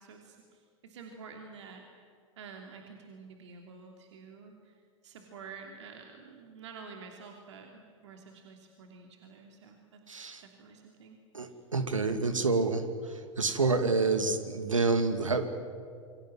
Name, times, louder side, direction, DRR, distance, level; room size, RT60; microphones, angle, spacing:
voice 1, 0.0-1.8 2.4-11.2, right 5 dB, 65° right, 3 dB, 3.0 m, -49 dB
voice 2, 10.1-10.4 11.3-12.8 13.4-15.5, right 3 dB, 80° right, 8 dB, 2.4 m, -28 dB
28.0 x 24.5 x 7.8 m, 2.3 s
figure-of-eight pair, 90°, 16 cm